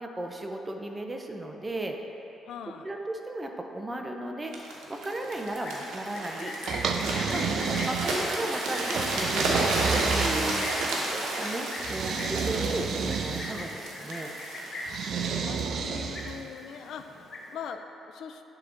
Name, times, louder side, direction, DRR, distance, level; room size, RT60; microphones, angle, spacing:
voice 1, 0.0-2.0 2.8-4.5 4.9-6.5 7.3-7.4 7.9-10.6 10.9-14.3, right 1 dB, 20° right, 3 dB, 0.6 m, -35 dB
voice 2, 2.5-2.9 7.4-8.1 15.3-18.4, left 7 dB, 75° left, 7 dB, 0.4 m, -42 dB
sound 1, 4.5-16.4 17.0-17.2, right 2 dB, 85° right, 1.0 m, -32 dB
Livestock farm animals working animals, 5.5-15.1 15.4-15.7 16.0-16.7 17.0-17.7, left 2 dB, 50° left, 0.8 m, -39 dB
sound 2, 6.7-8.4 9.0-11.0 11.8-13.7 14.9-16.5, right 6 dB, 65° right, 0.4 m, -31 dB
9.7 x 3.5 x 3.9 m, 3.0 s
cardioid pair, 90°, 0 cm